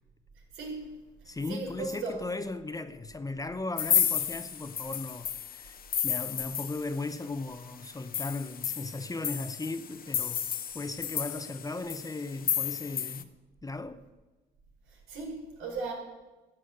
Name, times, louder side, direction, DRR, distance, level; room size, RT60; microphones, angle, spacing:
voice 1, 0.5-2.2 14.9-15.9, right 3 dB, 85° right, 4.8 m, -38 dB
voice 2, 1.2-10.5 10.7-13.3 13.6-14.0, left 3 dB, 15° left, 0.8 m, -37 dB
sound 1, 3.8-7.2 7.6-7.7 8.0-13.2, left 8 dB, 50° left, 0.9 m, -32 dB
13.5 x 8.4 x 7.9 m
cardioid pair, 90°, 20 cm